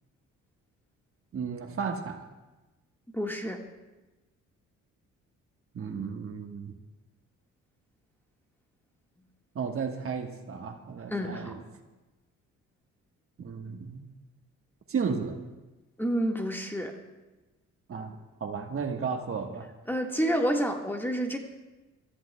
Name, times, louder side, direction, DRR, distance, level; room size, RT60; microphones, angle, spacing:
voice 1, 1.3-2.3 5.7-6.7 9.5-11.6 13.4-14.0 14.9-15.4 17.9-19.7, right 5 dB, 45° right, 4 dB, 1.4 m, -34 dB
voice 2, 3.1-3.6 11.1-11.6 16.0-17.0 19.9-21.4, equal, 5° left, 2 dB, 1.6 m, -29 dB
26.0 x 13.5 x 2.3 m, 1.1 s
cardioid pair, 90°, 30 cm